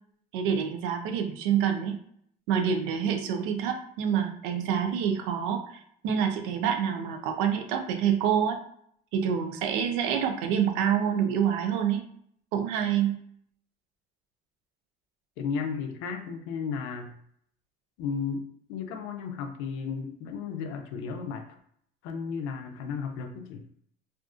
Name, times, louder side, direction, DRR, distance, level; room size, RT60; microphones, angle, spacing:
voice 1, 0.3-2.0 2.5-8.6 9.1-12.0 12.5-13.2, right 8 dB, 85° right, 5 dB, 0.5 m, -27 dB
voice 2, 15.4-17.1 18.0-21.4 22.0-23.6, left 6 dB, 80° left, 6 dB, 0.5 m, -34 dB
2.5 x 2.4 x 2.4 m, 0.66 s
supercardioid pair, 95°, 21 cm